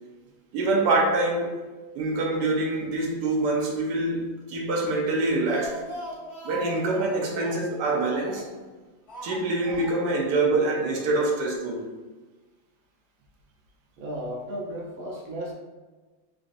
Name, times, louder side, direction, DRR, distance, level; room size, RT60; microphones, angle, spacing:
voice 1, 0.5-1.6 1.9-5.8 6.4-8.5 9.2-11.9, right 2 dB, 75° right, -1 dB, 1.0 m, -25 dB
Speech, 5.2-8.7 9.1-10.2 10.5-10.6 10.9-11.0, equal, 45° left, 1.1 m, -40 dB
voice 2, 14.0-15.5, right 1 dB, 90° right, -2 dB, 1.5 m, -34 dB
3.9 x 2.4 x 2.5 m, 1.3 s
omnidirectional pair, 2.2 m